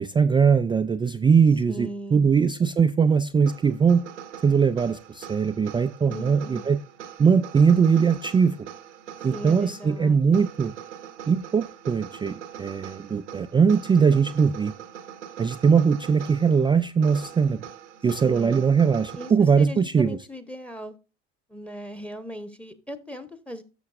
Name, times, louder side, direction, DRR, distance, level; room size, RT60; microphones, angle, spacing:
voice 1, 0.0-4.1 4.4-6.8 7.2-8.6 9.2-10.7 11.3-14.7 15.4-17.6 18.0-20.2, right 6 dB, 15° right, 0.3 m, -21 dB
voice 2, 1.7-2.3 6.1-6.6 9.3-10.4 18.2-18.6 19.2-20.9 21.5-23.6, equal, 5° left, 1.0 m, -38 dB
sound 1, 3.5-19.3, right 9 dB, 90° right, 1.0 m, -42 dB
13.0 x 6.4 x 2.5 m
hypercardioid pair, 70°, 35 cm